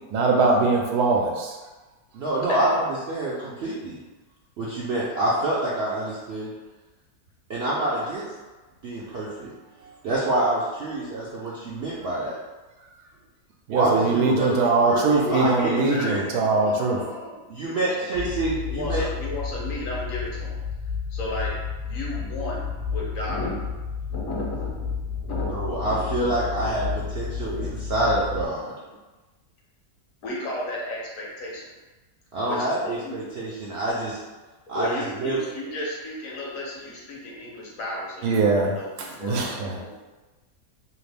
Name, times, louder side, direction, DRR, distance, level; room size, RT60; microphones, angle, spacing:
voice 1, 0.1-1.6 9.1-9.3 9.8-9.9 13.7-17.0 38.2-39.8, right 3 dB, 85° right, 0 dB, 1.2 m, -22 dB
voice 2, 2.1-4.0 4.6-6.5 7.5-8.2 8.8-9.5 10.0-12.3 13.7-16.2 17.5-19.0 25.5-26.9 27.2-28.7 32.3-34.2 34.7-35.4, right 1 dB, 65° right, -7 dB, 0.6 m, -27 dB
voice 3, 15.2-18.2 18.7-20.6 21.1-21.5 21.8-23.7 24.1-24.9 25.2-26.3 26.6-26.7 27.5-27.7 30.2-31.7 32.5-33.2 34.7-40.0, left 1 dB, 65° left, -4 dB, 1.1 m, -34 dB
sound 1, 18.1-28.4, left 6 dB, 35° left, 0.5 m, -31 dB
2.9 x 2.4 x 3.3 m, 1.2 s
omnidirectional pair, 1.6 m